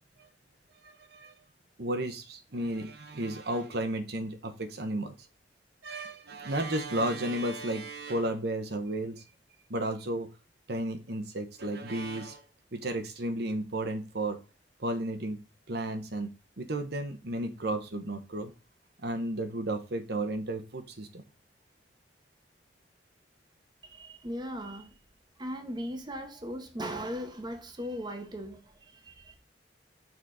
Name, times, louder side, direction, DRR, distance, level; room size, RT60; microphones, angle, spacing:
voice 1, 0.8-1.3 1.8-5.1 5.8-9.2 9.7-10.3 10.7-12.4 12.7-14.4 14.8-15.4 15.7-16.3 16.6-18.5 19.0-21.2, right 1 dB, 65° right, 1.1 m, -33 dB
voice 2, 23.8-25.0 25.4-29.4, equal, 25° right, 1.1 m, -38 dB
6.3 x 4.3 x 4.9 m
head